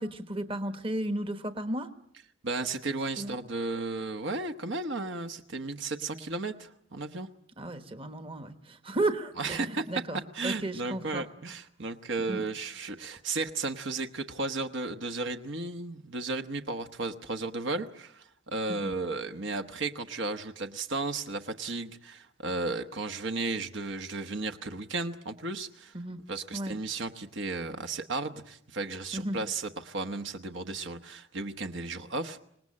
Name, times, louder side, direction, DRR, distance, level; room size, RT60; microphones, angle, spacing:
voice 1, 0.0-1.9 3.2-3.4 7.6-10.2 10.4-11.2 12.3-12.5 18.7-18.9 25.9-26.2 26.5-26.8 29.1-29.4, right 1 dB, 25° right, 9 dB, 1.2 m, -34 dB
voice 2, 2.4-7.3 9.4-9.9 10.3-32.4, right 3 dB, 60° right, 6 dB, 1.2 m, -34 dB
25.5 x 19.5 x 8.6 m, 0.72 s
head